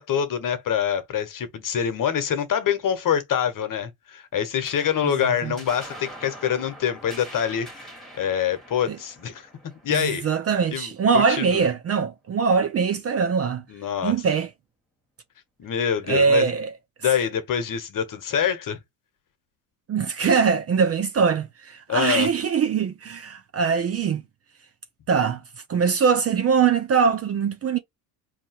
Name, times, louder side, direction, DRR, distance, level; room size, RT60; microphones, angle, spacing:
voice 1, 0.0-7.9 8.1-9.5 9.8-10.3 10.7-11.6 13.7-14.1 15.6-16.5 17.0-18.8 21.9-22.3, left 8 dB, 40° left, 1.1 m, -25 dB
sound 1, 4.6-11.4, equal, ahead, 1.7 m, -44 dB
voice 2, 5.0-5.5 8.9-9.0 9.9-13.6 14.0-14.5 16.1-16.7 19.9-24.2 25.1-25.4 25.7-27.8, right 6 dB, 30° right, 0.5 m, -22 dB
4.4 x 2.8 x 2.9 m
supercardioid pair, 85°, 47 cm